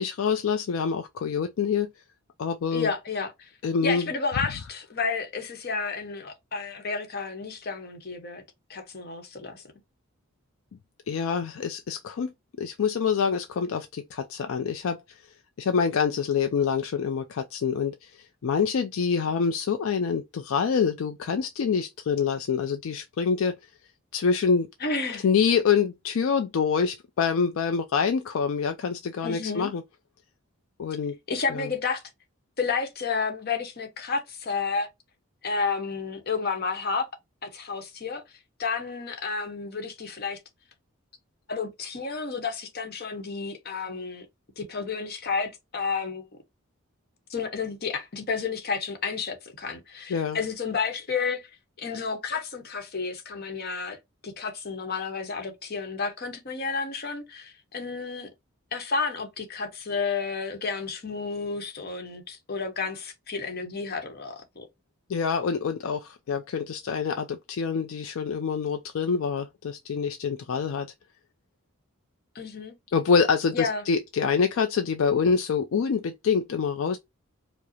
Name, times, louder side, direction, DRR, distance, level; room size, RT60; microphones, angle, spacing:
voice 1, 0.0-1.9 2.4-2.9 3.6-4.1 11.1-12.3 12.6-15.2 15.6-23.5 24.1-24.7 25.2-29.8 30.8-31.2 31.5-31.7 50.1-50.4 65.1-70.9 72.9-77.0, left 6 dB, 70° left, 0.4 m, -26 dB
voice 2, 2.7-3.5 3.8-8.4 8.7-9.6 24.8-25.2 29.2-29.7 31.3-32.0 32.6-34.9 35.4-37.1 37.4-38.2 38.6-40.4 41.5-44.3 44.6-46.3 47.3-51.5 51.8-54.0 54.2-58.3 58.7-64.7 72.3-72.7 73.5-73.8, left 4 dB, 45° left, 0.9 m, -31 dB
4.7 x 2.0 x 2.7 m
head